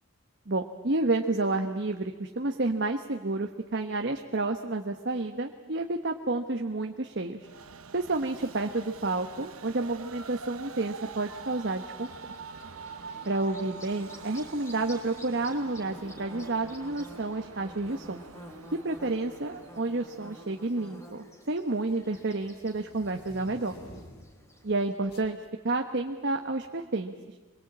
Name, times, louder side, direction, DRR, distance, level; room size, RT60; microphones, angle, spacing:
voice 1, 0.5-7.5 7.9-12.1 13.3-18.2 18.7-23.8 24.6-25.4 25.6-27.1, right 2 dB, 55° right, 4 dB, 1.1 m, -30 dB
Train, 7.4-20.9, right 5 dB, 85° right, 1.2 m, -46 dB
Bird / Buzz, 12.0-25.0, equal, 15° left, 3.4 m, -50 dB
sound 1, 18.1-18.4 19.4-19.9 20.2-24.5 25.1-25.3, equal, 50° left, 2.8 m, -51 dB
25.0 x 22.0 x 8.7 m, 1.3 s
head